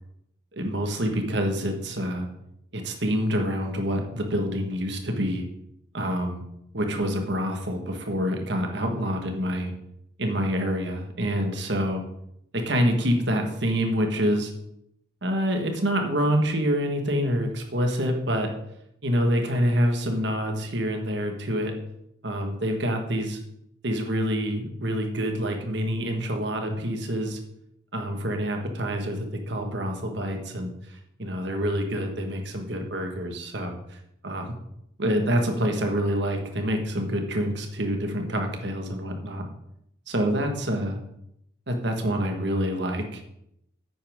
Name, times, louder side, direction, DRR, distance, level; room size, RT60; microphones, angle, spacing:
voice 1, 0.5-2.3 2.7-5.4 5.9-6.4 6.7-9.7 10.2-12.0 12.5-14.5 15.2-18.5 19.0-21.7 22.2-23.4 23.8-27.4 27.9-34.0 34.2-34.5 35.0-39.5 40.1-41.0 41.7-43.3, equal, 60° right, 4 dB, 1.6 m, -27 dB
10.0 x 8.7 x 3.7 m, 0.77 s
head